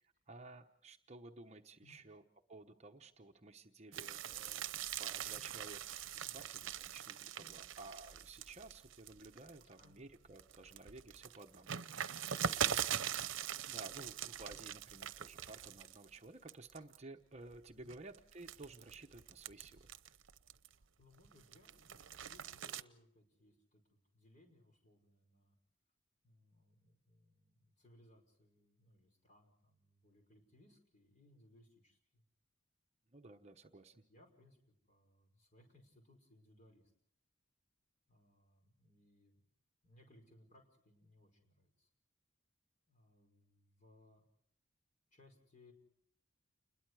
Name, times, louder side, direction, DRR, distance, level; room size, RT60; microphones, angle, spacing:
voice 1, 0.3-2.2 2.5-4.6 5.0-5.8 6.3-11.8 13.7-19.9 33.1-34.0, right 2 dB, 35° right, 5 dB, 1.0 m, -54 dB
sound 1, 3.9-9.8 10.3-16.2 16.5-17.0 17.5-20.8 21.2-22.8, right 9 dB, 80° right, 0.8 m, -42 dB
voice 2, 9.6-10.0 12.2-12.7 13.4-14.1 14.5-14.7 17.7-18.0 20.6-25.6 26.2-32.2 34.1-36.9 38.1-39.5 39.8-41.9 42.9-44.2 45.1-45.7, left 1 dB, 40° left, 3 dB, 5.4 m, -67 dB
29.5 x 21.5 x 4.8 m, 0.68 s
head